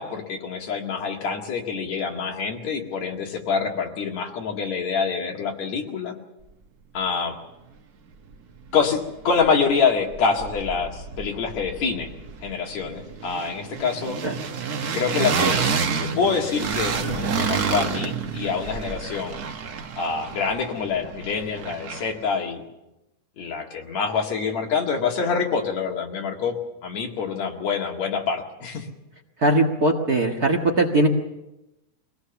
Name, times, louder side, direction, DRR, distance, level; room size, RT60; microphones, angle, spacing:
voice 1, 0.0-6.2 6.9-7.4 8.7-12.1 12.4-14.2 14.9-15.6 16.0-19.4 20.0-22.6 23.4-28.9, left 5 dB, 65° left, 1 dB, 3.3 m, -26 dB
sound 1, 8.3-8.4 8.7-9.8 10.1-22.3, right 6 dB, 75° right, 0.8 m, -29 dB
voice 2, 29.4-31.1, right 2 dB, 40° right, 3 dB, 1.7 m, -20 dB
23.5 x 17.5 x 7.0 m, 0.95 s
omnidirectional pair, 3.4 m